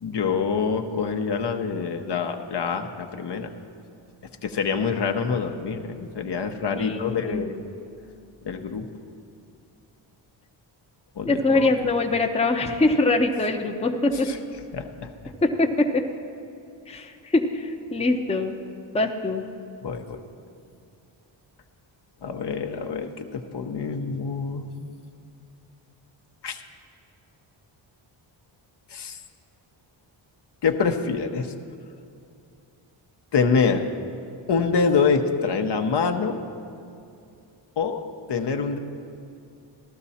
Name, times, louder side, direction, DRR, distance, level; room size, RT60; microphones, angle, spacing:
voice 1, 0.0-3.5 4.4-7.6 8.4-8.8 11.2-11.7 14.2-14.4 14.7-15.1 19.8-20.2 22.2-24.7 26.4-26.6 28.9-29.2 30.6-31.5 33.3-33.9 34.5-36.4 37.8-38.0 38.3-38.8, left 5 dB, 55° left, 5 dB, 0.9 m, -25 dB
voice 2, 6.8-7.4 11.3-14.3 15.4-16.0 16.9-18.6 18.9-19.5, left 2 dB, 10° left, 3 dB, 0.8 m, -23 dB
14.5 x 12.0 x 4.2 m, 2.5 s
cardioid pair, 75°, 50 cm